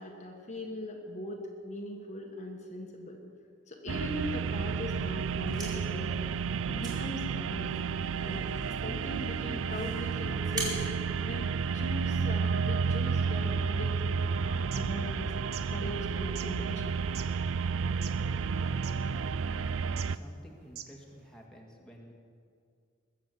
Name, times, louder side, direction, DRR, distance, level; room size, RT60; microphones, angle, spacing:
voice 1, 0.0-3.2 3.7-6.3 6.7-7.7 8.2-8.5 8.8-10.9 11.2-13.9 14.4-17.0, left 1 dB, 35° left, 1 dB, 1.5 m, -40 dB
sound 1, 3.9-20.2, right 5 dB, 80° right, 0.4 m, -31 dB
sound 2, 5.2-12.0, right 2 dB, 20° right, 3.2 m, -44 dB
sound 3, 14.5-14.8 15.4-15.6 16.3-16.5 17.1-17.3 17.9-18.2 18.5-18.6 18.8-19.0 19.9-20.1 20.6-21.0, right 10 dB, 50° right, 0.9 m, -43 dB
voice 2, 20.1-22.1, equal, 5° left, -2 dB, 1.9 m, -53 dB
20.5 x 7.5 x 7.8 m, 2.2 s
head